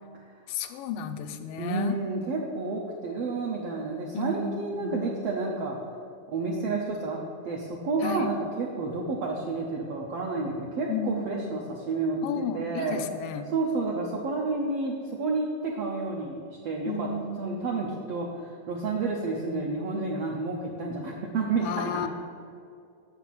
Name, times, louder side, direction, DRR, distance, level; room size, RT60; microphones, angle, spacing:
voice 1, 0.5-2.0 4.1-5.1 8.0-8.3 10.9-11.7 12.2-13.5 16.9-18.0 21.6-22.1, left 5 dB, 90° left, 8 dB, 2.3 m, -33 dB
voice 2, 1.6-5.8 6.3-7.2 7.4-13.0 13.5-17.1 17.4-22.1, right 3 dB, 75° right, -1 dB, 1.4 m, -30 dB
7.0 x 5.9 x 7.5 m, 2.4 s
omnidirectional pair, 3.8 m